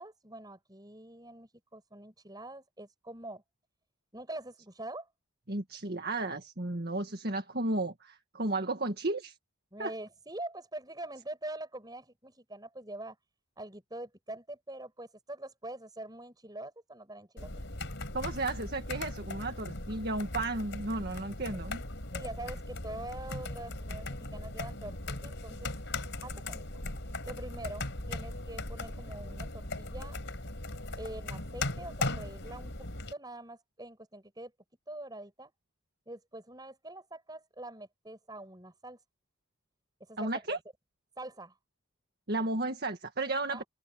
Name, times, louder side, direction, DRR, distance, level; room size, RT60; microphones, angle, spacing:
voice 1, 0.0-3.4 4.1-5.1 9.7-13.2 13.6-17.5 22.1-25.7 26.2-26.8 27.2-30.2 31.0-34.5 34.9-35.5 36.1-39.0 40.0-40.6 41.2-41.6 43.5-43.7, right 1 dB, 20° right, 6.4 m, -44 dB
voice 2, 5.5-9.4 9.8-9.9 18.1-21.8 40.2-40.6 42.3-43.6, right 2 dB, 45° right, 1.8 m, -33 dB
sound 1, 17.4-33.1, left 2 dB, 55° left, 4.8 m, -38 dB
open air
head